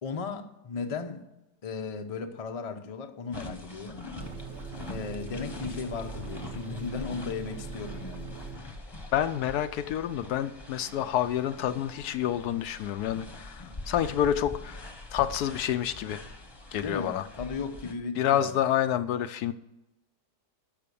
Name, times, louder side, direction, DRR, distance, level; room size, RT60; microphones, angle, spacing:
voice 1, 0.0-1.3 1.6-4.1 4.9-8.4 16.8-18.5, left 5 dB, 35° left, 0.6 m, -36 dB
sound 1, 3.3-17.9, left 2 dB, 20° left, 1.0 m, -44 dB
sound 2, 4.2-8.6, right 5 dB, 50° right, 1.2 m, -41 dB
voice 2, 9.1-16.2 16.7-17.3 18.2-19.5, left 10 dB, 75° left, 1.1 m, -28 dB
12.5 x 5.8 x 6.9 m
omnidirectional pair, 1.8 m